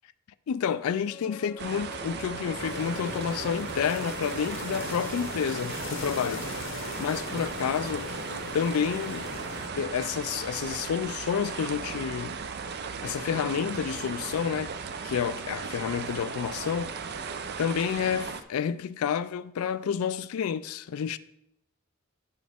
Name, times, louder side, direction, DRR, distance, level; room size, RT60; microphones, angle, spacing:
voice 1, 0.5-6.5 7.0-8.1 8.5-9.3 9.8-12.4 13.0-14.7 15.0-16.9 17.6-21.2, left 7 dB, 75° left, 0.3 m, -29 dB
sound 1, 1.0-4.8 8.5-8.6, left 2 dB, 15° left, 0.9 m, -47 dB
sound 2, 1.6-18.4, right 5 dB, 45° right, 0.5 m, -37 dB
sound 3, 2.6-9.7, left 3 dB, 60° left, 0.8 m, -39 dB
10.0 x 6.2 x 3.5 m
head